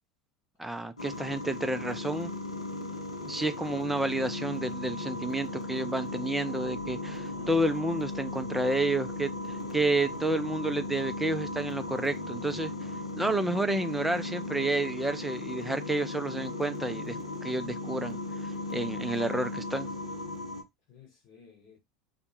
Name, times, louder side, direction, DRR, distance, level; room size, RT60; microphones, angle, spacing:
voice 1, 0.6-2.3 3.3-9.3 9.7-12.7 13.2-18.2 18.7-19.9, right 2 dB, 5° right, 0.3 m, -30 dB
sound 1, 1.0-20.6, left 2 dB, 85° left, 0.5 m, -37 dB
sound 2, 6.4-12.3, left 1 dB, 85° right, 0.7 m, -50 dB
voice 2, 9.4-9.7 20.9-21.8, left 6 dB, 50° left, 0.8 m, -55 dB
2.1 x 2.1 x 2.8 m
figure-of-eight pair, 75°, 3 cm